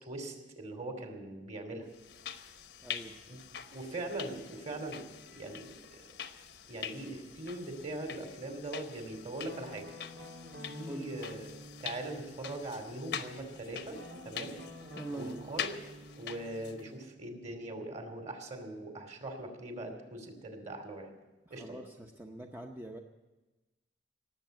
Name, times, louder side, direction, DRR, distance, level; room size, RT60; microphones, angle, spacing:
voice 1, 0.0-1.9 3.3-3.4 3.7-5.0 5.3-5.7 6.7-9.9 10.7-14.6 15.1-15.7 16.1-21.1 21.5-21.8, right 2 dB, 40° right, 4 dB, 2.6 m, -41 dB
sound 1, 1.9-16.9, left 8 dB, 65° left, 0.9 m, -45 dB
voice 2, 2.8-3.2 10.9-11.1 15.0-15.5 21.5-23.0, right 1 dB, 10° right, 2 dB, 0.7 m, -43 dB
Guitar, 9.5-13.3 13.9-18.7, equal, 85° right, 2.5 m, -51 dB
18.5 x 7.8 x 9.1 m, 1.1 s
head